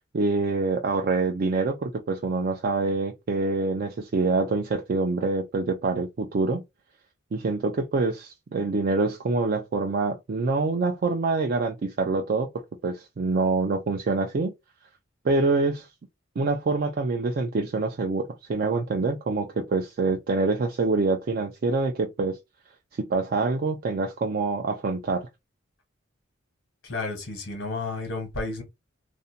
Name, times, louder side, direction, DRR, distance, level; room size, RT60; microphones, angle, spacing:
voice 1, 0.1-6.6 7.3-12.5 12.8-14.5 15.2-15.9 16.4-22.4 23.0-25.3, right 3 dB, 50° right, 0.4 m, -25 dB
voice 2, 26.8-28.6, left 3 dB, 80° left, 1.1 m, -32 dB
2.5 x 2.1 x 2.6 m
head